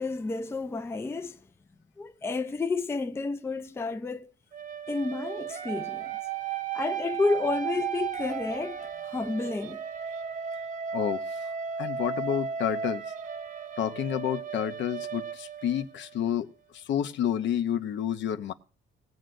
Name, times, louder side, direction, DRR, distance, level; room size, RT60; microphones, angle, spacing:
voice 1, 0.0-1.4 2.0-4.3 4.9-6.2 6.7-9.8, left 3 dB, 10° left, 0.4 m, -31 dB
sound 1, 4.5-16.3, right 7 dB, 40° right, 0.6 m, -35 dB
voice 2, 10.9-11.5 11.8-13.0 13.8-16.5 16.7-18.5, left 10 dB, 65° left, 0.7 m, -30 dB
20.0 x 7.6 x 2.6 m
cardioid pair, 140°, 21 cm